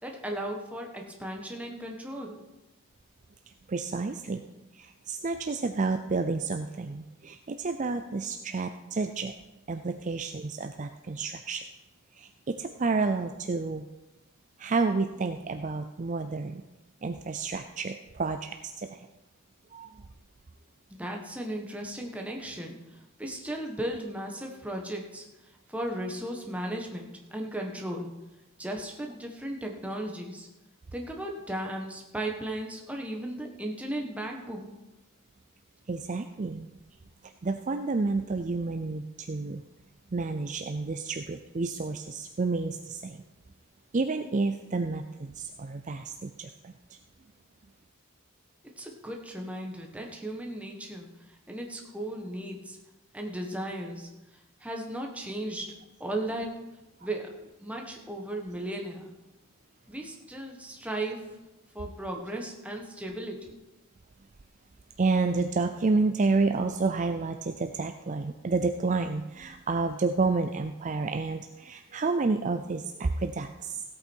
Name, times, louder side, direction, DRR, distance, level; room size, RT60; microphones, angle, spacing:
voice 1, 0.0-2.4 20.9-22.8 23.2-25.2 25.7-28.1 28.6-30.5 30.9-34.7 48.8-52.8 53.1-54.1 54.6-55.7 56.0-56.5 57.0-57.3 57.6-59.1 59.9-61.2 61.7-63.6, right 1 dB, 5° right, 1 dB, 1.4 m, -36 dB
voice 2, 3.7-4.4 4.7-9.3 9.7-11.6 12.2-13.9 14.6-16.6 17.0-19.1 19.7-19.9 35.9-36.6 37.4-39.6 40.1-43.2 43.9-46.7 65.0-73.8, right 3 dB, 35° right, 7 dB, 0.4 m, -30 dB
16.0 x 8.6 x 4.6 m, 1.1 s
head